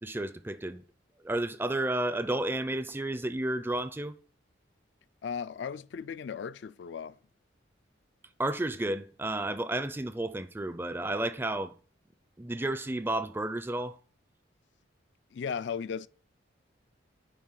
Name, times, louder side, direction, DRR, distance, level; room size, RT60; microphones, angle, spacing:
voice 1, 0.0-0.8 1.2-4.1 8.4-11.7 12.4-14.0, right 1 dB, 10° right, 0.4 m, -32 dB
voice 2, 5.2-7.2 15.3-16.1, left 6 dB, 60° left, 0.3 m, -36 dB
7.6 x 5.0 x 7.4 m
head